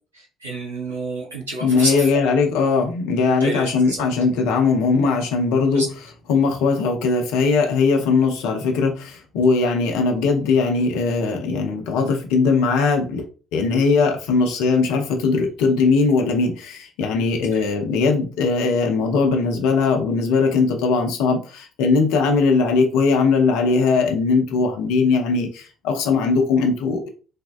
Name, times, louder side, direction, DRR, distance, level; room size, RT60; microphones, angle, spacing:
voice 1, 0.1-2.3 3.3-4.0 5.7-5.9 17.5-17.6, right 2 dB, 85° right, -4 dB, 1.3 m, -29 dB
voice 2, 1.6-5.9 6.3-13.2 13.5-27.1, left 4 dB, 70° left, 3 dB, 0.6 m, -19 dB
3.4 x 2.2 x 2.4 m, 0.37 s
figure-of-eight pair, 50°, 0 cm